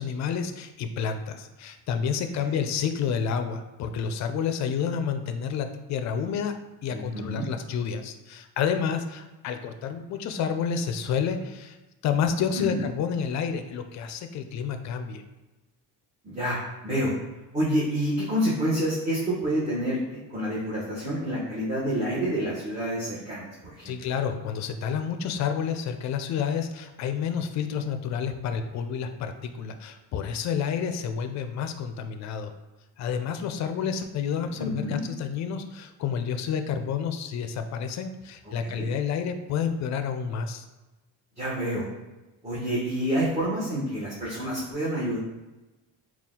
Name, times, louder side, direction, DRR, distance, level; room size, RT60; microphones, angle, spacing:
voice 1, 0.0-6.5 6.8-11.8 12.0-15.2 23.8-32.5 33.0-40.6, left 7 dB, 50° left, 8 dB, 0.4 m, -29 dB
voice 2, 6.9-7.5 12.5-12.8 16.2-17.1 17.5-23.9 34.6-35.0 38.6-38.9 41.4-41.9 42.4-45.2, equal, 20° right, -10 dB, 1.0 m, -28 dB
4.2 x 2.3 x 3.6 m, 1.1 s
cardioid pair, 145°, 38 cm